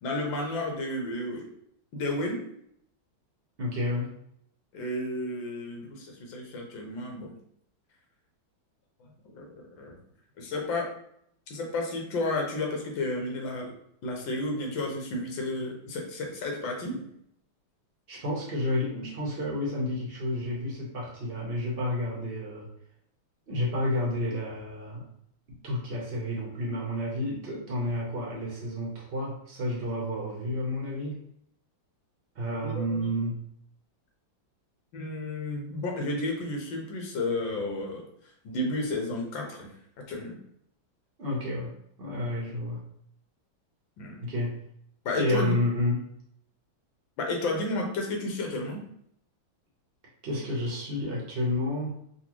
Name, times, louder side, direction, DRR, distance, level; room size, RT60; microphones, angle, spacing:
voice 1, 0.0-1.4 1.9-2.4 4.7-7.3 9.0-10.0 10.4-10.8 11.5-13.7 14.0-17.1 32.6-33.1 34.9-38.0 38.4-39.7 40.1-40.4 44.0-44.2 45.0-45.5 47.2-48.8, left 2 dB, 75° left, 0 dB, 1.6 m, -32 dB
voice 2, 3.6-4.2 18.1-22.7 23.5-25.1 25.5-31.2 32.3-33.4 41.2-41.7 42.0-42.8 44.2-44.5 45.2-46.1 50.2-52.0, left 1 dB, 70° right, -4 dB, 0.5 m, -30 dB
4.0 x 2.3 x 3.0 m, 0.70 s
omnidirectional pair, 2.2 m